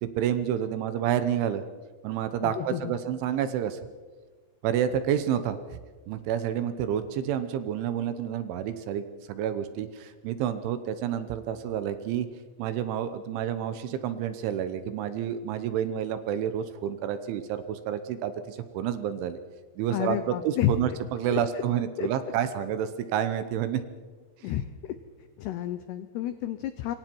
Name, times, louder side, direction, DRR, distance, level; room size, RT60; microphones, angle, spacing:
voice 1, 0.0-1.6 2.0-3.8 4.6-5.6 6.1-12.3 12.6-19.4 19.8-23.8 24.4-24.5, right 9 dB, 75° right, 11 dB, 3.1 m, -29 dB
voice 2, 2.4-2.9 19.9-20.7 21.3-21.4 22.0-22.1 24.4-24.7 25.4-26.9, left 14 dB, 90° left, 10 dB, 2.3 m, -30 dB
26.5 x 23.5 x 4.6 m, 1.4 s
omnidirectional pair, 5.9 m